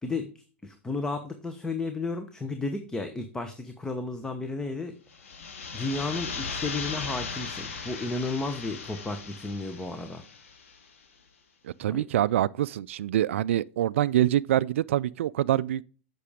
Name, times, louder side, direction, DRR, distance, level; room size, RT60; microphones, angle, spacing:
voice 1, 0.0-5.0 5.7-10.2 11.9-12.0, left 3 dB, 10° left, 1.0 m, -33 dB
sound 1, 5.1-10.8, left 5 dB, 80° left, 2.2 m, -37 dB
voice 2, 11.6-15.8, right 12 dB, 70° right, 0.4 m, -25 dB
8.2 x 6.1 x 5.0 m
hypercardioid pair, 115°, 7 cm